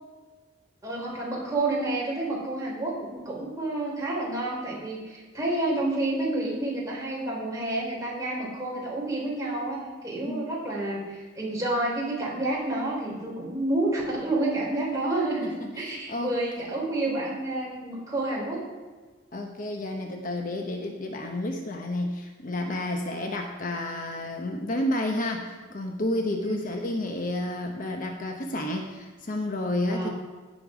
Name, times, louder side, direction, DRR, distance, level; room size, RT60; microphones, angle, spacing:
voice 1, 0.8-18.6 26.4-26.6 29.8-30.1, right 2 dB, 20° right, -4 dB, 3.5 m, -29 dB
voice 2, 10.2-10.5 15.4-16.4 17.1-17.2 19.3-30.1, left 1 dB, 45° left, 3 dB, 0.9 m, -31 dB
16.0 x 5.5 x 5.0 m, 1.4 s
head